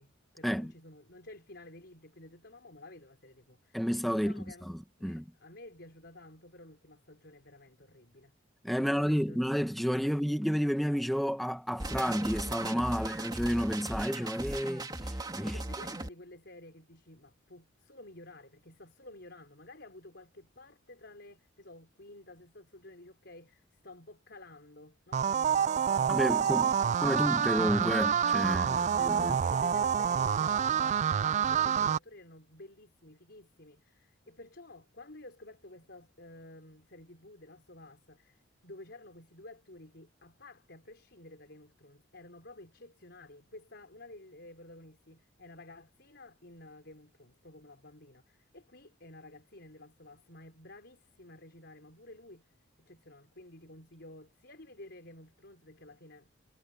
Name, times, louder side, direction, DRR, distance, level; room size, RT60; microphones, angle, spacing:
voice 1, 0.0-4.7 5.0-8.3 8.8-9.4 13.0-13.1 15.4-27.1 28.4-56.3, left 2 dB, 55° left, 4.9 m, -52 dB
voice 2, 3.7-4.4 5.0-5.2 8.6-15.6 26.1-26.7 27.0-28.6 29.0-29.3, equal, ahead, 1.1 m, -30 dB
sound 1, 11.8-16.1, right 2 dB, 20° right, 2.7 m, -37 dB
sound 2, 25.1-32.0, right 7 dB, 35° right, 0.3 m, -27 dB
head